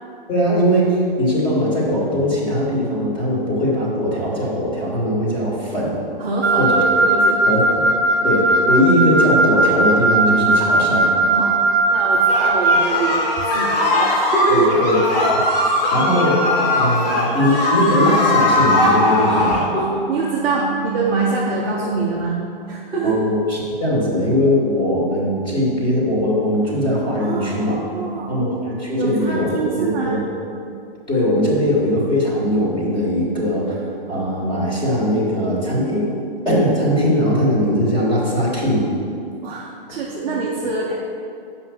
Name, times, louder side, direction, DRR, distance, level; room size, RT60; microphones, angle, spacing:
voice 1, 0.3-6.0 6.6-6.8 7.4-7.9 8.2-11.1 14.5-15.0 15.3-19.7 23.0-27.8 28.3-30.2 31.1-36.1 36.4-38.8 39.9-40.0, equal, 15° left, -6 dB, 2.6 m, -20 dB
voice 2, 6.2-6.7 7.0-7.4 11.3-11.6 11.9-14.7 19.3-19.4 19.7-23.2 27.2-28.4 29.0-30.2 30.6-31.0 39.4-40.9, right 4 dB, 5° right, -7 dB, 0.3 m, -24 dB
Wind instrument woodwind instrument, 6.4-12.9, right 2 dB, 30° right, 0.9 m, -17 dB
sound 1, 12.3-19.7, left 1 dB, 40° left, 2.0 m, -19 dB
7.7 x 5.8 x 7.4 m, 2.4 s
hypercardioid pair, 150°, 30 cm